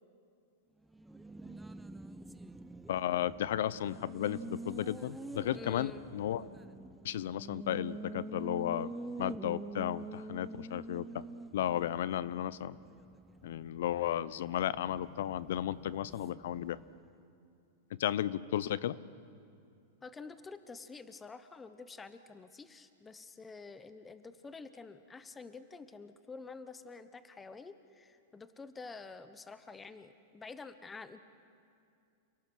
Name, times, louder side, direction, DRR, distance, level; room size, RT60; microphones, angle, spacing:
Race car auto racing, 0.8-17.1, right 2 dB, 5° right, 0.7 m, -47 dB
voice 1, 2.9-6.5 7.0-11.2 11.5-12.8 13.4-16.8 18.0-19.0, left 11 dB, 70° left, 18 dB, 0.7 m, -34 dB
voice 2, 5.5-6.1 20.0-31.2, left 4 dB, 15° left, 11 dB, 1.0 m, -49 dB
29.0 x 17.5 x 6.4 m, 2.5 s
hypercardioid pair, 120°, 0 cm